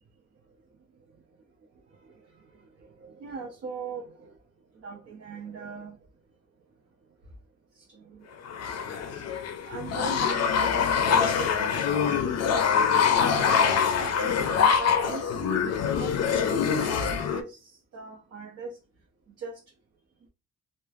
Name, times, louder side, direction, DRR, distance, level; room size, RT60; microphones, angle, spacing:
voice 1, 2.5-4.3 4.7-6.0 7.7-9.0 9.2-9.3 9.6-13.0 13.3-14.4 14.8-16.9 17.3-18.8 19.3-19.6, right 4 dB, 50° right, 0.8 m, -41 dB
sound 1, 8.5-17.4, left 6 dB, 55° left, 0.5 m, -24 dB
3.1 x 2.1 x 2.4 m
cardioid pair, 90°, 30 cm